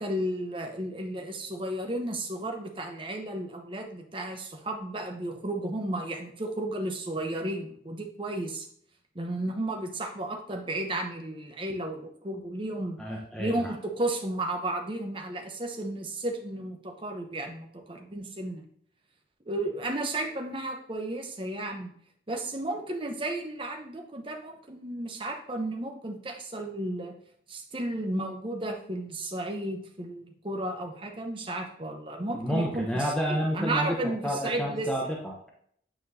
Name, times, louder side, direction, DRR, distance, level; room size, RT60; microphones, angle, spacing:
voice 1, 0.0-8.7 9.1-13.0 13.4-18.6 19.5-21.9 22.3-27.1 27.5-35.1, right 1 dB, 25° right, 3 dB, 0.8 m, -33 dB
voice 2, 13.0-13.7 32.3-33.9 34.2-35.5, equal, 5° left, -3 dB, 0.8 m, -30 dB
8.8 x 4.5 x 2.7 m, 0.64 s
head